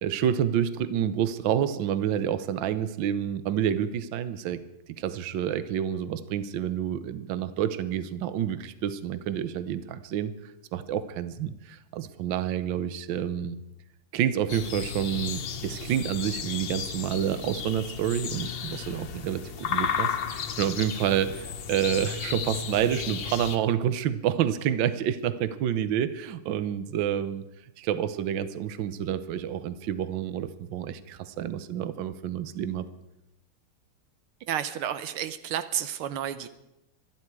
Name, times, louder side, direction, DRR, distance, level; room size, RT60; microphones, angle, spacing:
voice 1, 0.0-4.6 5.0-13.6 14.1-27.4 27.8-32.9, right 10 dB, 65° right, 13 dB, 1.5 m, -28 dB
sound 1, 14.5-23.6, left 7 dB, 60° left, 1.6 m, -33 dB
voice 2, 34.5-36.5, right 10 dB, 85° right, 12 dB, 1.7 m, -31 dB
25.0 x 11.0 x 4.8 m, 0.88 s
omnidirectional pair, 2.4 m